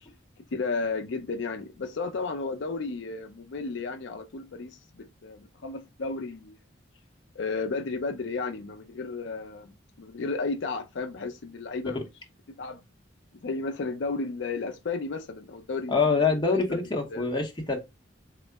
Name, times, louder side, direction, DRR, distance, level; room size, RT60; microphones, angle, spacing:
voice 1, 0.5-6.6 7.4-12.0 12.6-12.8 13.4-16.2 16.5-16.8 17.1-17.3, left 3 dB, 70° left, 0.5 m, -33 dB
voice 2, 15.9-17.8, left 4 dB, 25° left, 0.7 m, -25 dB
3.6 x 2.0 x 3.3 m
head